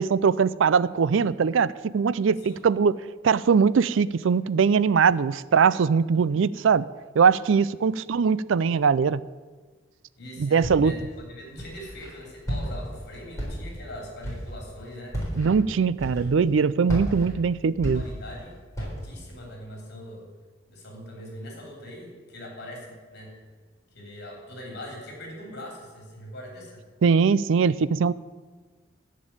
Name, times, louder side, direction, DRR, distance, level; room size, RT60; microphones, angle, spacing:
voice 1, 0.0-3.0 3.2-6.8 7.2-9.2 10.4-10.9 15.4-18.0 27.0-28.1, right 6 dB, 75° right, 18 dB, 0.4 m, -21 dB
voice 2, 10.2-15.2 17.9-20.2 20.7-23.3 23.9-26.9, left 1 dB, 55° left, 0 dB, 3.3 m, -42 dB
Walk footsteps, 10.6-11.1 11.6-12.1 12.5-12.9 13.3-13.9 14.2-14.6 15.1-15.5 16.0-16.5 16.9-18.4 18.7-19.1, equal, 15° left, 4.2 m, -32 dB
15.0 x 5.3 x 8.8 m, 1.4 s
head